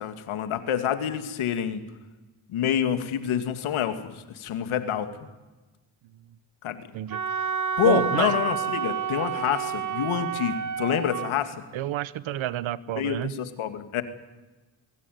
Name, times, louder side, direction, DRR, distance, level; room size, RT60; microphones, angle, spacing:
voice 1, 0.0-1.8 2.5-5.1 6.6-6.8 7.8-11.6 13.0-14.0, left 9 dB, 75° left, 9 dB, 2.4 m, -27 dB
Wind instrument woodwind instrument, 7.1-11.3, right 7 dB, 35° right, 1.9 m, -29 dB
voice 2, 7.8-8.3 11.7-13.3, right 13 dB, 70° right, 18 dB, 1.1 m, -29 dB
22.0 x 17.5 x 9.4 m, 1.1 s
cardioid pair, 85°, 49 cm